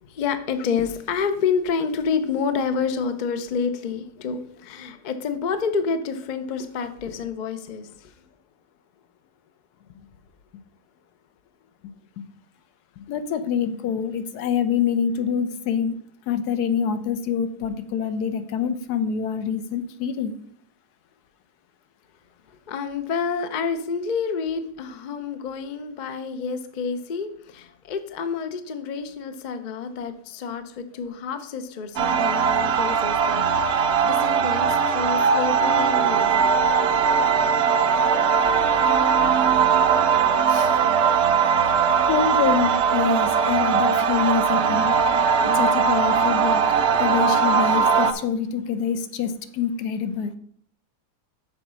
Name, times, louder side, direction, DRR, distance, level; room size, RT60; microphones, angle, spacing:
voice 1, 0.0-8.1 22.5-36.4, left 5 dB, 55° left, 9 dB, 0.5 m, -28 dB
voice 2, 13.1-15.9 16.3-20.3 40.5-40.8 42.1-44.9 45.5-46.6 47.0-50.3, left 7 dB, 75° left, 10 dB, 1.2 m, -26 dB
sound 1, 32.0-48.1, right 6 dB, 60° right, 0.7 m, -20 dB
6.9 x 4.0 x 6.1 m, 0.65 s
omnidirectional pair, 1.7 m